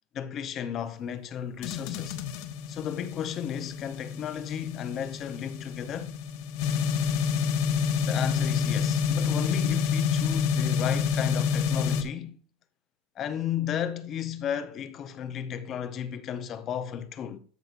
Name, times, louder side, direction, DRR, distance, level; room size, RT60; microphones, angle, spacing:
voice 1, 0.1-2.2 2.7-6.1 8.0-12.4 13.2-17.4, left 9 dB, 25° left, 0.7 m, -34 dB
sound 1, 1.6-12.0, left 6 dB, 45° left, 1.1 m, -28 dB
13.5 x 5.9 x 2.5 m
supercardioid pair, 180°, 0 cm